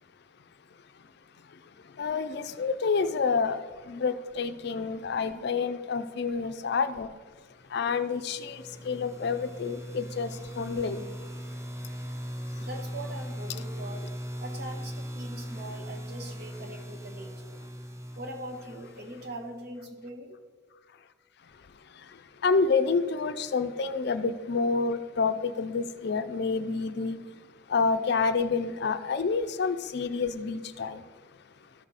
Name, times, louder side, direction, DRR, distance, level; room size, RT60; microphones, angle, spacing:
voice 1, 2.0-3.6 3.9-7.1 7.7-10.3 10.6-11.1 22.4-27.2 27.7-31.0, left 4 dB, 60° left, 11 dB, 0.4 m, -28 dB
sound 1, 7.9-19.7, equal, 15° right, 0.6 m, -39 dB
voice 2, 12.6-14.1 14.4-17.6 18.1-20.4, right 1 dB, 55° right, 2 dB, 1.4 m, -42 dB
13.0 x 6.2 x 4.1 m, 1.5 s
head